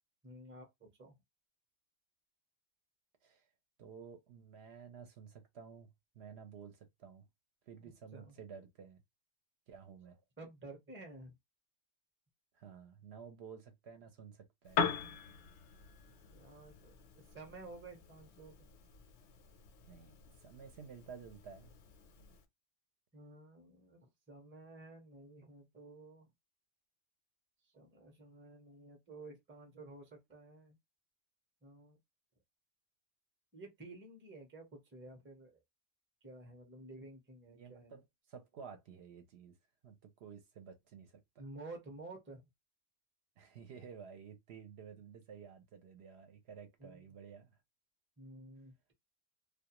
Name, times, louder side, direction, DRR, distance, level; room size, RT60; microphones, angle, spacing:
voice 1, 0.2-1.1 7.8-8.3 10.4-11.3 16.3-18.7 23.1-26.3 27.7-30.8 31.6-32.0 33.5-35.6 36.2-37.9 41.4-42.4 46.8-47.1 48.2-48.9, right 2 dB, 15° right, 0.6 m, -52 dB
voice 2, 3.8-5.9 6.1-7.3 7.7-9.0 9.7-10.2 12.5-14.8 19.8-21.7 37.5-38.0 38.3-39.6 39.8-41.5 43.4-47.6, right 6 dB, 70° right, 0.8 m, -53 dB
Piano, 14.6-22.4, left 6 dB, 80° left, 0.9 m, -42 dB
2.3 x 2.3 x 2.9 m
omnidirectional pair, 1.2 m